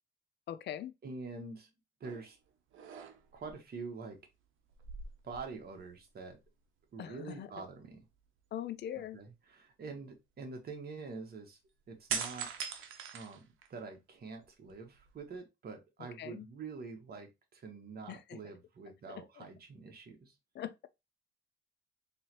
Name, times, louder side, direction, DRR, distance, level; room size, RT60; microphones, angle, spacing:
voice 1, 0.5-0.9 7.0-7.6 8.5-9.2 16.0-16.5 18.1-18.4 19.1-19.5 20.5-20.9, left 11 dB, 60° left, 0.5 m, -42 dB
voice 2, 1.0-1.7 2.0-2.4 3.3-4.2 5.2-6.4 6.9-8.0 9.0-11.6 11.9-12.5 13.1-13.4 13.7-20.3, right 4 dB, 50° right, 1.4 m, -46 dB
sound 1, 2.0-2.3 2.7-3.5 4.7-6.0 6.3-6.4 12.1-13.9 14.4-15.3, right 7 dB, 85° right, 0.8 m, -41 dB
3.8 x 3.0 x 3.0 m
cardioid pair, 90°, 20 cm